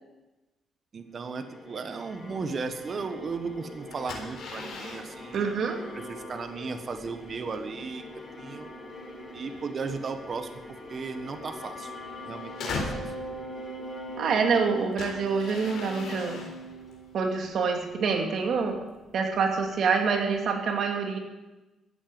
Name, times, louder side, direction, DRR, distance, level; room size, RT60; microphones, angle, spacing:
voice 1, 0.9-5.6 5.9-8.0 8.4-8.7 9.3-11.9 12.2-13.0, right 4 dB, 45° right, 8 dB, 1.3 m, -36 dB
sound 1, 1.2-17.6, left 1 dB, 25° left, 4.2 m, -42 dB
sound 2, 2.1-20.5, left 4 dB, 75° left, 3.8 m, -44 dB
voice 2, 5.3-5.8 14.2-16.4 17.1-18.8 19.1-21.2, right 5 dB, 65° right, 3 dB, 2.4 m, -26 dB
14.0 x 8.9 x 7.7 m, 1.1 s
cardioid pair, 90°, 0 cm